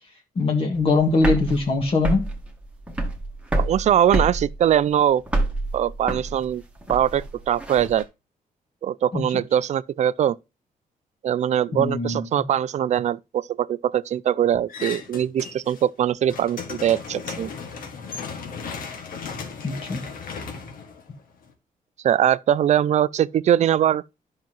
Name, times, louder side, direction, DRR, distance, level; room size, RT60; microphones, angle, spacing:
voice 1, 0.4-2.3 9.1-9.2 11.7-12.2 19.6-20.0, left 3 dB, 40° left, 1.7 m, -22 dB
sound 1, 0.7-8.0, right 1 dB, 10° right, 1.4 m, -27 dB
voice 2, 3.6-5.2 5.7-6.6 6.9-8.1 8.8-10.4 11.2-17.5 22.0-24.0, right 10 dB, 55° right, 0.4 m, -22 dB
sound 2, 14.7-15.8 16.1-21.5, left 5 dB, 85° left, 1.9 m, -36 dB
11.5 x 5.9 x 3.0 m
wide cardioid pair, 160°, 14 cm